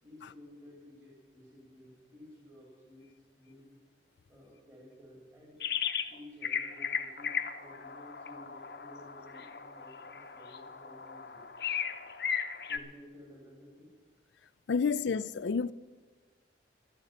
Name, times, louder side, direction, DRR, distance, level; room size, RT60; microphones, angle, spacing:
voice 1, 0.0-3.8 4.3-5.6 6.0-11.5 12.7-13.9 14.8-14.9, left 1 dB, 15° right, 2.9 m, -54 dB
sound 1, 5.6-6.1 6.4-12.8, left 7 dB, 60° left, 0.8 m, -36 dB
voice 2, 14.7-15.7, left 5 dB, 75° left, 0.4 m, -29 dB
11.5 x 8.9 x 8.5 m
head